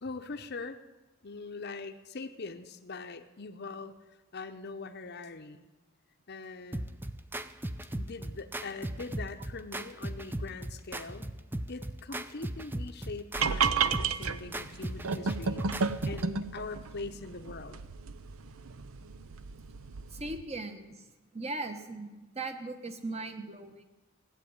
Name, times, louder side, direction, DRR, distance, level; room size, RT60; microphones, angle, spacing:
voice 1, 0.0-0.8 1.2-4.0 4.3-5.6 6.3-6.9 7.9-11.3 11.7-17.8, left 3 dB, 50° left, 6 dB, 0.7 m, -42 dB
sound 1, 6.7-16.3, right 1 dB, 10° right, 0.5 m, -38 dB
sound 2, 13.3-20.4, right 5 dB, 75° right, 0.7 m, -33 dB
voice 2, 20.1-23.8, right 2 dB, 30° right, 8 dB, 1.2 m, -39 dB
16.5 x 8.1 x 9.5 m, 1.1 s
head